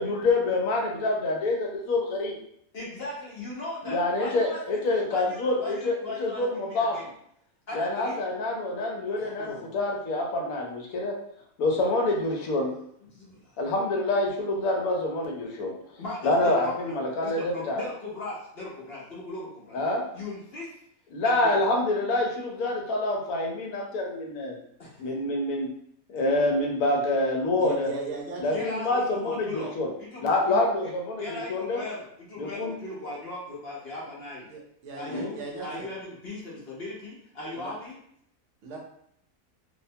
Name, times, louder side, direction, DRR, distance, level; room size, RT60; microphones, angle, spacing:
voice 1, 0.0-2.3 3.8-7.0 7.7-11.2 11.6-12.7 13.6-15.7 16.2-17.8 19.7-20.0 21.1-24.6 25.0-25.7 26.1-27.9 28.4-29.9 30.2-31.8 32.4-32.7 35.1-35.3, left 2 dB, 80° left, 0 dB, 1.1 m, -26 dB
voice 2, 2.7-7.1 7.7-8.2 9.2-9.9 13.1-13.5 16.0-19.8 20.1-20.7 21.2-21.5 24.8-25.1 28.5-29.7 30.0-30.6 31.2-34.5 35.0-38.0, left 2 dB, 55° left, -6 dB, 0.8 m, -38 dB
voice 3, 27.6-28.6 29.6-29.7 34.5-35.9 37.5-37.7 38.6-38.8, right 3 dB, 65° right, -1 dB, 0.9 m, -38 dB
2.7 x 2.1 x 2.7 m, 0.69 s
omnidirectional pair, 1.5 m